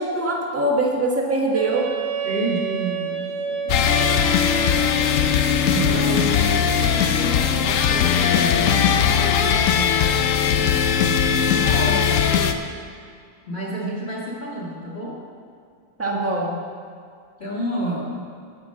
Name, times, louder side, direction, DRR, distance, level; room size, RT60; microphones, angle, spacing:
voice 1, 0.0-1.9 11.6-12.0 16.0-16.6, right 2 dB, 10° right, -2 dB, 1.1 m, -23 dB
Wind instrument woodwind instrument, 1.5-6.6, right 6 dB, 70° right, 1.4 m, -30 dB
voice 2, 2.2-4.9 5.7-12.1 13.5-15.2 17.4-18.3, right 1 dB, 35° left, -7 dB, 1.9 m, -31 dB
sound 1, 3.7-12.5, left 7 dB, 70° left, 0.7 m, -19 dB
11.0 x 5.1 x 7.6 m, 2.3 s
omnidirectional pair, 1.9 m